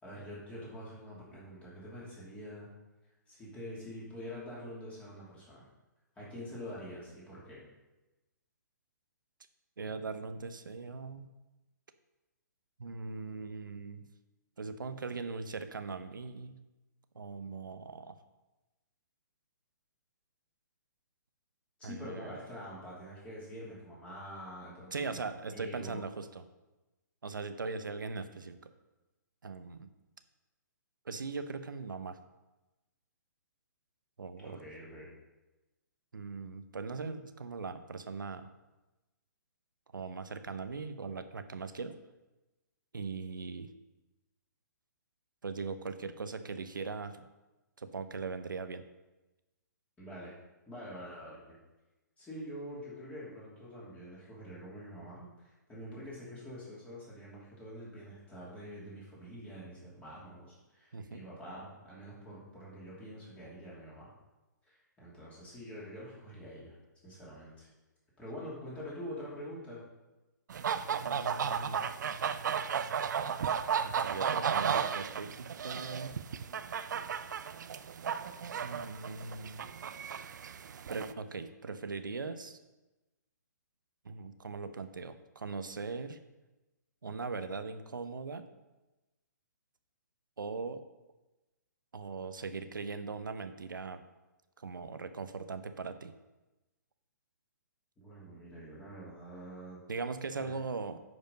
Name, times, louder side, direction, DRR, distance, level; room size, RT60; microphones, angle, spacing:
voice 1, 0.0-2.7 3.3-5.6 6.2-7.6 21.8-25.2 25.5-26.0 34.4-35.1 50.0-50.3 50.7-51.6 52.2-64.1 64.7-66.7 67.0-67.7 68.2-69.8 98.0-99.8 100.4-100.5, equal, 10° left, -7 dB, 2.8 m, -46 dB
voice 2, 9.8-11.3 12.8-14.0 14.6-16.6 17.1-18.1 21.8-22.4 24.9-26.4 27.2-28.7 29.4-29.9 31.0-32.2 34.2-34.6 36.1-38.5 39.9-42.0 42.9-43.7 45.4-47.2 47.8-48.8 60.9-61.2 71.0-71.8 73.8-76.2 78.6-79.6 80.9-82.6 84.0-86.2 87.0-88.5 90.4-90.8 91.9-94.0 94.6-96.1 99.9-101.0, right 4 dB, 90° right, 10 dB, 0.9 m, -40 dB
sound 1, 70.5-81.1, right 7 dB, 65° right, 0.5 m, -34 dB
9.5 x 5.1 x 5.2 m, 1.1 s
hypercardioid pair, 145°, 10 cm